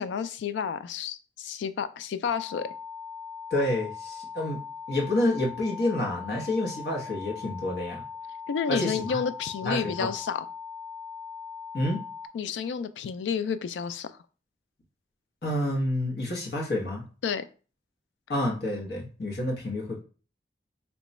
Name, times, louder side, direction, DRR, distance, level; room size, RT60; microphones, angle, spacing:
voice 1, 0.0-2.7 8.5-10.5 12.3-14.2 17.2-17.4, left 6 dB, 85° left, 0.3 m, -30 dB
sound 1, 2.3-12.3, left 7 dB, 10° left, 0.4 m, -40 dB
voice 2, 3.5-4.6 4.9-8.0 8.7-9.2 9.6-10.1 11.7-12.0 15.4-17.0 18.3-20.0, left 1 dB, 65° left, 1.0 m, -28 dB
2.9 x 2.3 x 4.0 m
head